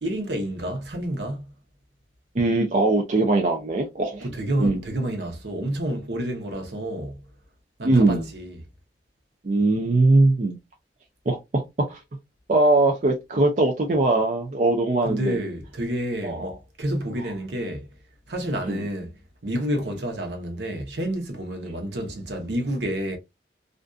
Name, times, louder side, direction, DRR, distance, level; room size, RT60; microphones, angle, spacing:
voice 1, 0.0-1.5 4.2-7.3 7.8-8.6 15.0-17.9 18.3-19.2 19.4-23.2, right 1 dB, 75° right, 0.8 m, -29 dB
voice 2, 2.3-4.2 4.6-4.8 7.8-8.3 9.4-10.6 11.3-11.6 11.9-12.0 12.5-15.4 16.2-16.5 18.7-18.9, right 2 dB, 40° right, 0.4 m, -21 dB
2.5 x 2.3 x 2.4 m
head